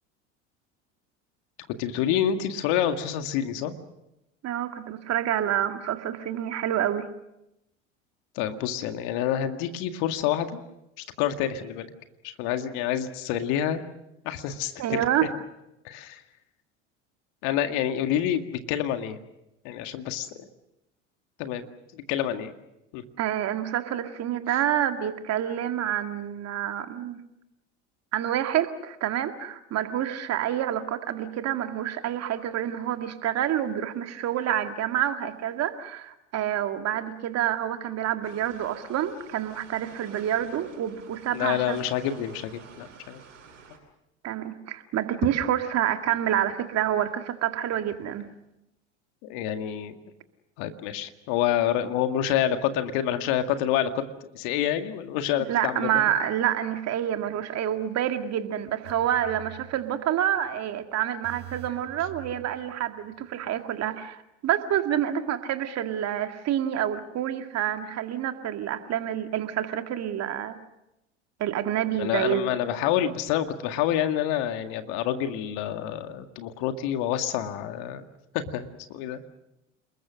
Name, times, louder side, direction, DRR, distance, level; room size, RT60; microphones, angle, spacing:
voice 1, 1.8-3.7 8.4-10.6 11.2-11.9 12.2-13.8 14.2-15.0 15.8-16.2 17.4-19.2 19.6-20.5 21.4-22.5 22.9-23.0 41.3-43.2 49.2-50.0 50.6-54.0 54.3-56.1 72.0-78.0 78.3-79.2, left 10 dB, 60° left, 8 dB, 2.0 m, -28 dB
voice 2, 4.4-7.1 14.8-15.3 23.2-27.2 28.1-41.8 44.2-48.3 55.5-70.6 71.4-72.5, right 11 dB, 45° right, 7 dB, 2.1 m, -28 dB
sound 1, 38.2-43.8, right 5 dB, 85° right, 7.6 m, -50 dB
sound 2, 58.8-60.4 60.7-60.8 61.2-63.2 63.4-63.6, right 16 dB, 65° right, 5.7 m, -46 dB
29.5 x 21.0 x 6.3 m, 0.89 s
hypercardioid pair, 70°, 36 cm